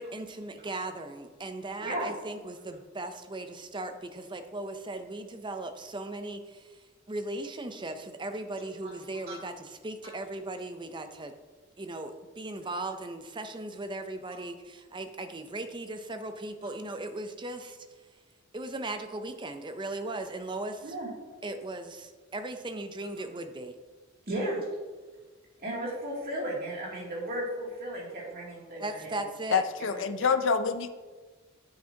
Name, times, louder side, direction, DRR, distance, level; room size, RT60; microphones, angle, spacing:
voice 1, 0.0-6.8 7.1-11.3 11.8-17.8 18.5-20.9 21.4-23.7 28.8-29.6, right 2 dB, 25° right, 7 dB, 0.6 m, -38 dB
voice 2, 24.3-24.6 25.6-29.2 29.8-30.3, right 1 dB, 50° right, -4 dB, 2.6 m, -35 dB
voice 3, 29.5-30.9, left 5 dB, 65° left, 10 dB, 0.6 m, -26 dB
9.2 x 7.8 x 2.8 m, 1.4 s
head